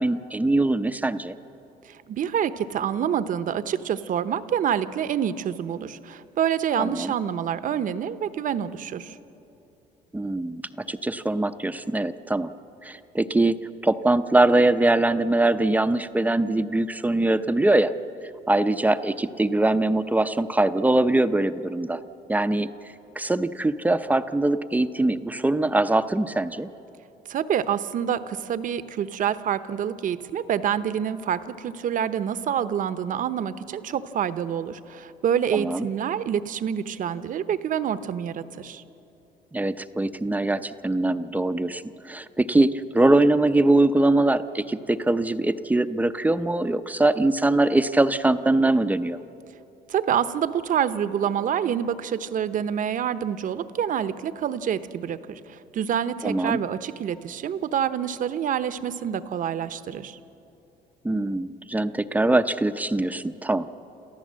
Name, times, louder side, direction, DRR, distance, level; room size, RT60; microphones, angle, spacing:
voice 1, 0.0-1.3 6.8-7.1 10.1-10.6 10.9-12.5 12.8-17.9 18.5-22.0 22.3-22.7 23.2-26.7 35.5-35.9 39.5-49.2 56.2-56.6 61.0-63.7, right 2 dB, 10° right, 10 dB, 0.6 m, -22 dB
voice 2, 1.9-9.2 27.3-38.8 49.9-60.2, right 9 dB, 50° right, 12 dB, 0.8 m, -27 dB
27.5 x 14.5 x 7.5 m, 2.9 s
cardioid pair, 110°, 17 cm